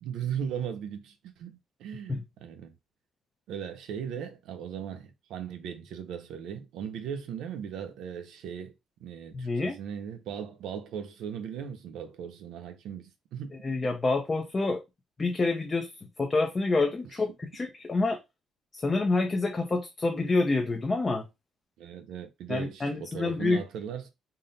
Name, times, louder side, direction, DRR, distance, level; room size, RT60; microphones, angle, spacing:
voice 1, 0.0-2.7 3.5-8.7 9.0-13.6 21.8-24.1, right 8 dB, 85° right, 0.7 m, -38 dB
voice 2, 9.3-9.8 13.6-14.8 15.2-15.9 16.2-18.2 18.7-21.2 22.5-23.6, left 3 dB, 20° left, 0.5 m, -27 dB
3.8 x 2.1 x 3.9 m
cardioid pair, 160°, 0 cm